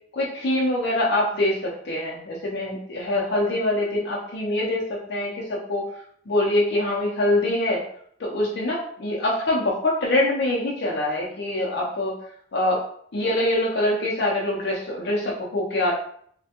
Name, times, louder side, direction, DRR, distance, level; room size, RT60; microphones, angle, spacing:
voice 1, 0.1-5.9 6.3-7.8 8.2-12.2 12.5-12.8 13.1-16.0, left 1 dB, 65° left, -4 dB, 0.5 m, -24 dB
3.2 x 2.1 x 2.8 m, 0.62 s
head